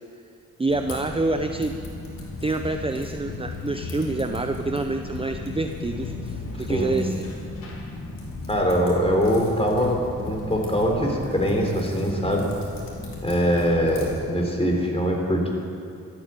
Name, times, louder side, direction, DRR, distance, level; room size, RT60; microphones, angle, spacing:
voice 1, 0.6-1.7 2.4-7.3, right 2 dB, 15° right, 6 dB, 0.7 m, -27 dB
Typing, 0.7-14.2, left 2 dB, 90° left, 2.7 m, -37 dB
sound 1, 3.2-7.8, left 5 dB, 70° left, 1.1 m, -38 dB
voice 2, 6.6-6.9 8.5-12.5 13.2-15.5, equal, 15° left, 0 dB, 3.7 m, -23 dB
14.0 x 8.5 x 9.3 m, 2.5 s
cardioid pair, 60°, 33 cm